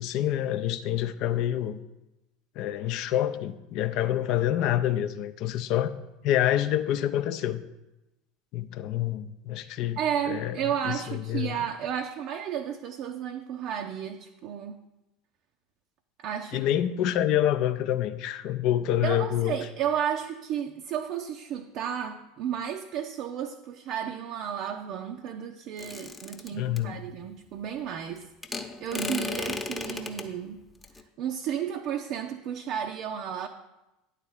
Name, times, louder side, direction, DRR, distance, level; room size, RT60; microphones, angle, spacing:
voice 1, 0.0-1.8 2.6-5.9 6.2-7.6 8.5-10.0 10.3-10.6 10.8-11.5 16.5-19.5 26.5-27.0, left 11 dB, 50° left, 11 dB, 0.5 m, -27 dB
voice 2, 10.0-14.8 16.2-16.6 19.0-28.3 28.8-30.6 31.2-33.5, right 9 dB, 45° right, 4 dB, 0.5 m, -32 dB
sound 1, 25.8-26.8 28.4-30.3 30.8-31.0, left 3 dB, 10° left, 0.9 m, -34 dB
10.0 x 4.1 x 7.1 m, 0.98 s
figure-of-eight pair, 70°, 0 cm